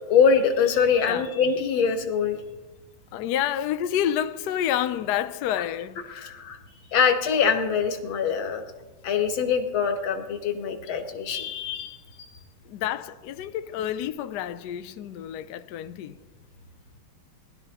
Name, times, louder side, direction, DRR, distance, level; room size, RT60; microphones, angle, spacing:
voice 1, 0.1-2.4 6.1-6.6 6.9-8.6 9.0-12.0, left 6 dB, 70° left, 1.9 m, -23 dB
voice 2, 3.1-6.3 12.6-16.2, left 10 dB, 85° left, 0.9 m, -29 dB
20.0 x 12.0 x 2.9 m
omnidirectional pair, 2.4 m